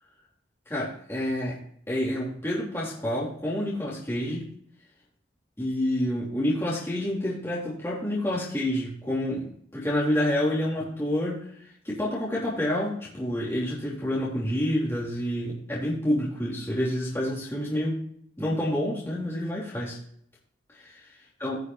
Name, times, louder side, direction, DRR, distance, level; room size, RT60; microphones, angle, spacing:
voice 1, 0.7-1.6 1.9-4.5 5.6-18.0 18.4-20.0 20.7-21.0 21.4-21.6, left 1 dB, 15° left, -7 dB, 3.1 m, -28 dB
18.0 x 6.4 x 2.7 m, 0.65 s
head